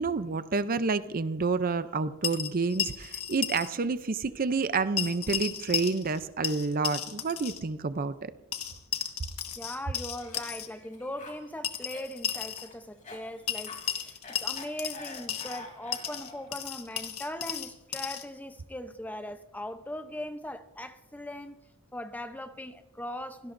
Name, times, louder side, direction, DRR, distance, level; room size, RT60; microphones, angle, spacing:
voice 1, 0.0-8.3, right 4 dB, 40° right, 0.5 m, -29 dB
sound 1, 2.2-3.7 4.0-4.1 5.0-6.2 6.4-7.6 8.5-10.7 11.6-12.7 13.5-15.6 15.9-18.3, left 9 dB, 75° left, 1.5 m, -34 dB
voice 2, 9.6-21.6 21.9-23.5, left 1 dB, 5° left, 0.7 m, -40 dB
Cough, 10.0-16.6, left 3 dB, 35° left, 3.1 m, -47 dB
24.5 x 17.5 x 2.6 m
head